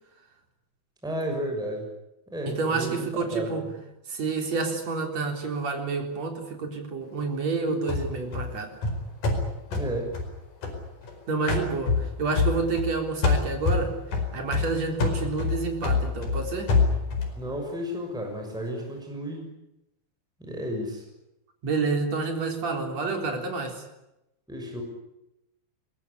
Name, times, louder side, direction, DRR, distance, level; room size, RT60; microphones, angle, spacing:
voice 1, 1.0-1.9 2.3-3.6 9.7-10.2 17.4-19.5 20.4-21.0 24.5-24.8, equal, ahead, 2 dB, 6.1 m, -33 dB
voice 2, 2.5-3.7 4.1-8.8 11.3-14.0 14.3-16.8 21.6-23.8, right 4 dB, 45° right, 4 dB, 4.9 m, -29 dB
sound 1, 7.9-11.1 11.5-13.0 13.2-17.4, left 4 dB, 60° left, 6.2 m, -26 dB
22.5 x 21.5 x 10.0 m, 0.89 s
omnidirectional pair, 4.3 m